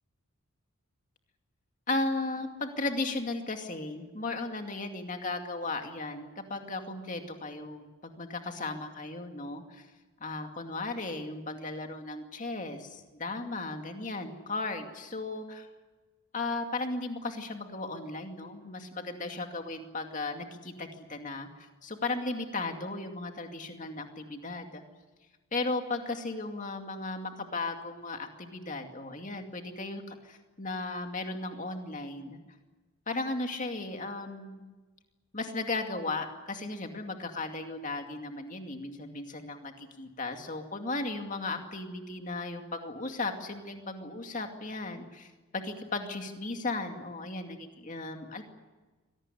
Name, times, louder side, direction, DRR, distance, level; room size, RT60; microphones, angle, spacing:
voice 1, 1.9-9.9 10.2-15.7 16.3-21.5 21.8-24.8 25.5-32.4 33.1-34.6 35.3-48.4, left 3 dB, 35° left, 4 dB, 2.4 m, -36 dB
24.5 x 18.5 x 9.9 m, 1.3 s
head